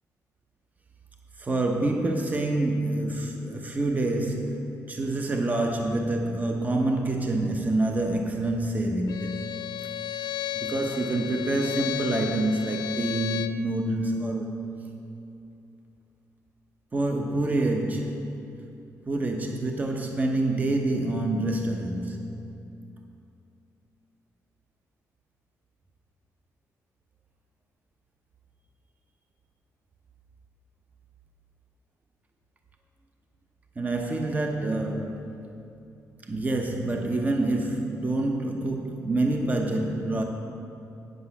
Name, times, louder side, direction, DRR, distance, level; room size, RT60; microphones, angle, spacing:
voice 1, 1.4-9.4 10.5-14.5 16.9-18.5 19.1-22.3 33.8-35.4 36.3-40.2, right 2 dB, 25° right, 2 dB, 0.8 m, -27 dB
Bowed string instrument, 9.1-13.6, left 13 dB, 80° left, 0.4 m, -33 dB
8.6 x 7.9 x 5.7 m, 2.7 s
cardioid pair, 95°, 6 cm